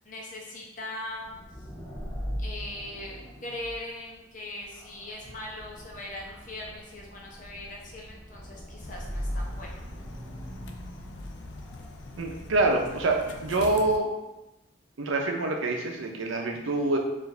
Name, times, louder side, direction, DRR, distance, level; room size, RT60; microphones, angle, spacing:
voice 1, 0.1-1.3 2.4-9.7, left 1 dB, 40° left, -2 dB, 0.8 m, -40 dB
sound 1, 1.1-13.7, equal, 10° left, 0.8 m, -40 dB
sound 2, 8.8-14.0, left 2 dB, 70° left, 0.4 m, -43 dB
voice 2, 12.2-14.1 15.0-17.0, right 2 dB, 90° right, 2 dB, 0.6 m, -26 dB
4.7 x 2.6 x 3.2 m, 0.99 s
head